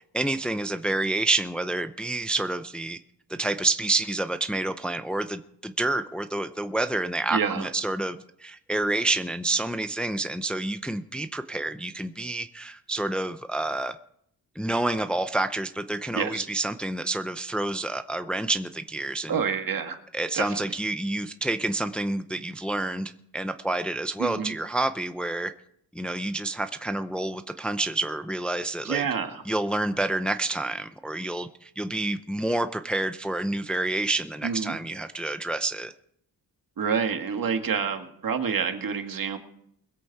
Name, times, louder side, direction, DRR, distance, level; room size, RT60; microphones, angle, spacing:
voice 1, 0.1-3.0 3.3-13.9 14.6-19.4 20.1-25.5 25.9-29.0 29.5-35.9, right 2 dB, 5° left, 9 dB, 0.6 m, -28 dB
voice 2, 7.3-7.7 16.2-16.5 19.3-20.0 20.3-20.6 24.2-24.5 28.8-29.4 34.4-34.8 36.8-39.4, right 6 dB, 60° right, 5 dB, 1.9 m, -28 dB
22.0 x 8.3 x 4.7 m, 0.70 s
cardioid pair, 105°, 39 cm